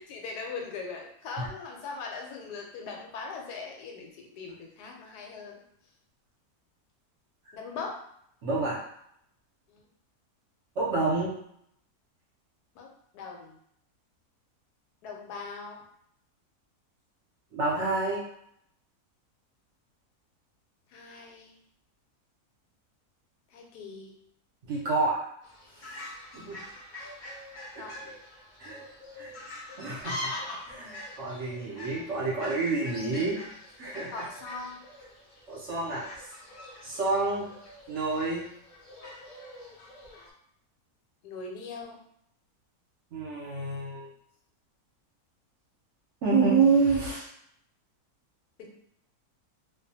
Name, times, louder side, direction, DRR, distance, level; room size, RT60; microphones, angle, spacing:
voice 1, 0.0-5.6 7.5-7.9 9.7-9.8 12.7-12.9 13.1-13.6 15.0-15.8 20.9-21.6 23.5-24.1 27.8-27.9 34.1-34.8 41.2-42.0 48.6-48.7, left 4 dB, 90° left, 1 dB, 1.2 m, -40 dB
voice 2, 8.4-8.8 10.8-11.3 17.5-18.3 24.7-25.2 25.8-25.9 26.3-26.6 27.7-27.9 28.6-28.8 29.1-29.3 29.8-30.3 30.7-33.4 33.8-34.2 35.5-36.1 36.8-37.5 37.9-38.5 43.1-44.1 46.2-47.3, right 4 dB, 60° right, -5 dB, 0.8 m, -28 dB
Fowl, 25.4-40.3, left 1 dB, 65° left, 0.4 m, -43 dB
2.5 x 2.2 x 2.7 m, 0.71 s
omnidirectional pair, 1.6 m